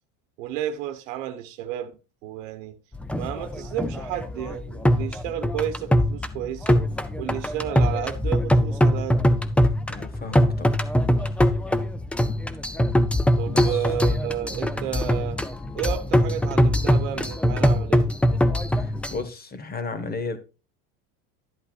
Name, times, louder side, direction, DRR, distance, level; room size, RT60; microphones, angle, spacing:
voice 1, 0.4-2.8 3.2-6.8 7.2-9.2 13.4-15.4 15.7-18.1, right 11 dB, 85° right, 1.0 m, -32 dB
sound 1, 2.9-19.2, equal, 5° left, 0.4 m, -22 dB
voice 2, 9.9-10.8 13.5-13.9 14.7-14.8 18.5-20.4, left 4 dB, 25° left, 1.2 m, -34 dB
11.5 x 8.2 x 2.4 m
supercardioid pair, 125°, 37 cm